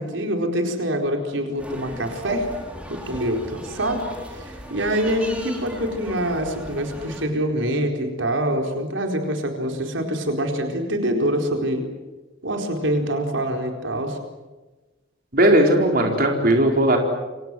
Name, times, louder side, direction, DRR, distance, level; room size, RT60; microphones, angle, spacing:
voice 1, 0.0-2.5 2.9-11.8 12.4-14.2, right 1 dB, 85° right, 3 dB, 4.5 m, -25 dB
sound 1, 1.6-7.3, equal, 5° right, 5.2 m, -38 dB
voice 2, 15.3-17.0, right 1 dB, 50° right, 2 dB, 4.4 m, -17 dB
29.5 x 26.0 x 7.8 m, 1.2 s
head